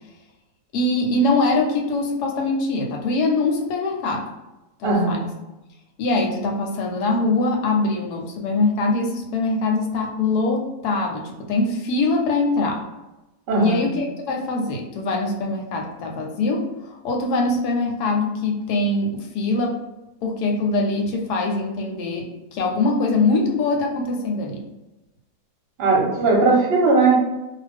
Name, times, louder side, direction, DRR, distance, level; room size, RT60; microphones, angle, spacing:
voice 1, 0.7-4.3 4.8-5.2 6.0-12.8 13.6-19.8 20.2-24.6, left 2 dB, 85° left, 1 dB, 1.1 m, -23 dB
voice 2, 4.8-5.3 13.5-13.8 25.8-27.2, right 3 dB, 50° right, -2 dB, 0.8 m, -18 dB
2.4 x 2.3 x 3.3 m, 1.0 s
omnidirectional pair, 1.7 m